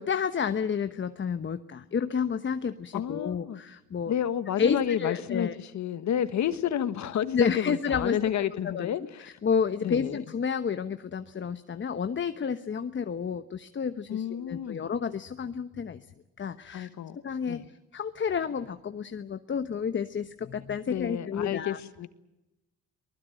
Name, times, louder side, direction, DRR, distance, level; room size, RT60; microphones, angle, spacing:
voice 1, 0.0-4.1 4.6-5.5 7.3-8.2 8.6-8.9 9.4-16.0 16.4-16.9 17.2-17.6 17.9-21.8, left 6 dB, 40° left, 1.1 m, -30 dB
voice 2, 2.9-3.6 4.1-9.3 9.8-10.2 14.1-14.9 16.7-17.2 17.5-17.6 20.9-22.1, left 9 dB, 70° left, 1.5 m, -30 dB
23.5 x 20.5 x 9.1 m
cardioid pair, 90°, 30 cm